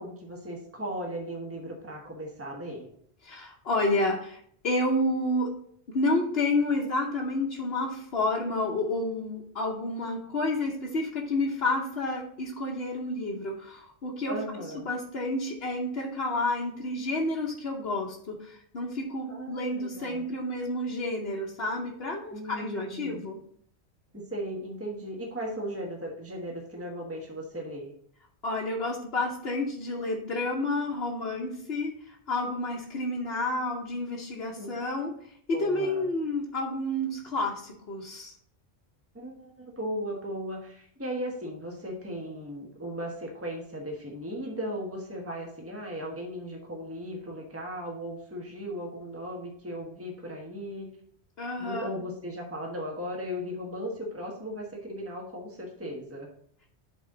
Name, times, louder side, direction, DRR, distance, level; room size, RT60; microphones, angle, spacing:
voice 1, 0.0-2.9 14.3-14.9 19.3-20.2 22.3-23.3 24.1-27.9 34.6-34.7 35.5-36.0 39.1-50.9 51.6-56.3, equal, 15° right, -1 dB, 1.3 m, -37 dB
voice 2, 3.2-5.5 5.9-14.4 14.7-23.4 28.4-38.3 51.4-51.9, left 2 dB, 70° left, -3 dB, 1.2 m, -30 dB
11.0 x 4.2 x 3.9 m, 0.64 s
omnidirectional pair, 1.1 m